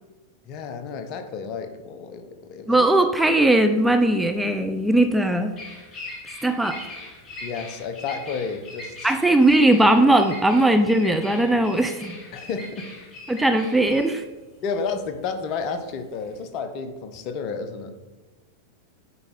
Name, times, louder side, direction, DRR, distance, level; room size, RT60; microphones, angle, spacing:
voice 1, 0.5-2.9 7.4-9.1 12.3-13.0 14.6-18.0, left 5 dB, 40° left, 8 dB, 0.9 m, -31 dB
voice 2, 2.7-5.5 6.4-6.8 9.0-12.2 13.3-14.2, right 1 dB, 5° right, 6 dB, 0.5 m, -19 dB
Bird vocalization bird call bird song, 3.2-16.4, left 2 dB, 25° left, 2.1 m, -41 dB
9.6 x 4.7 x 4.2 m, 1.2 s
figure-of-eight pair, 90°, 0 cm